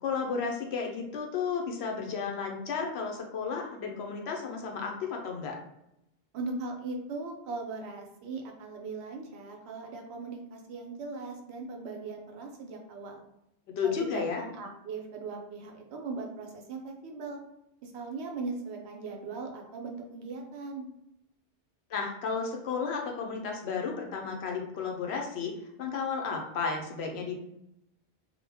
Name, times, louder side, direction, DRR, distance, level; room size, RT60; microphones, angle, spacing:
voice 1, 0.0-5.6 13.8-14.4 21.9-25.5 25.8-27.4, left 5 dB, 80° left, 1 dB, 0.8 m, -33 dB
voice 2, 6.3-13.2 13.8-17.4 17.8-20.9, right 3 dB, 75° right, 2 dB, 0.8 m, -39 dB
2.1 x 2.1 x 3.3 m, 0.83 s
omnidirectional pair, 1.1 m